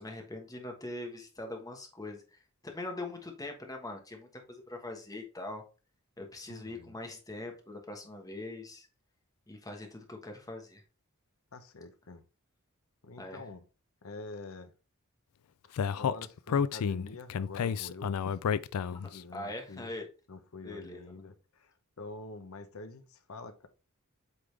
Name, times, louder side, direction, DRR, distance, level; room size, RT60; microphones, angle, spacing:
voice 1, 0.0-5.6 6.2-8.9 9.5-10.8 13.2-13.4 19.3-20.1 20.6-21.2, left 2 dB, 15° left, 1.3 m, -42 dB
voice 2, 6.5-7.0 11.5-12.2 13.0-13.6 14.0-14.7 16.0-18.4 18.9-19.9 20.3-23.7, left 3 dB, 70° left, 0.8 m, -46 dB
Speech, 15.8-19.2, left 7 dB, 85° left, 0.4 m, -30 dB
8.2 x 3.8 x 3.3 m
head